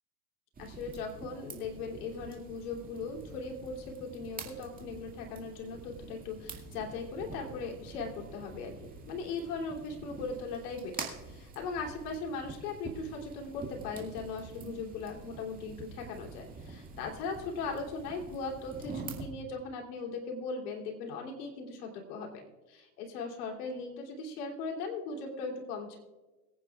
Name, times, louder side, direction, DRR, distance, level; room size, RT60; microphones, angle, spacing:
sound 1, 0.5-19.3, right 4 dB, 15° right, 2.3 m, -46 dB
voice 1, 0.6-8.7 9.1-26.0, left 4 dB, 70° left, 1 dB, 3.3 m, -39 dB
23.0 x 9.5 x 2.4 m, 1.1 s
hypercardioid pair, 105°, 48 cm